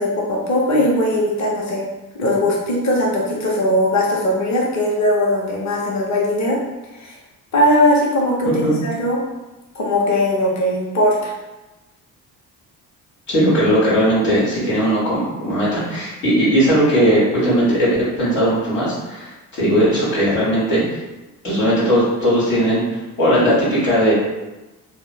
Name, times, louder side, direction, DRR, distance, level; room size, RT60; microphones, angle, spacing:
voice 1, 0.0-1.8 2.1-6.6 7.0-7.2 7.5-9.2 9.7-11.3, left 1 dB, 35° left, -3 dB, 1.1 m, -19 dB
voice 2, 8.4-8.8 13.3-17.9 18.2-21.0 21.4-22.8 23.2-24.1, equal, 80° left, -8 dB, 1.4 m, -18 dB
3.7 x 2.1 x 4.0 m, 1.1 s
figure-of-eight pair, 40°, 48 cm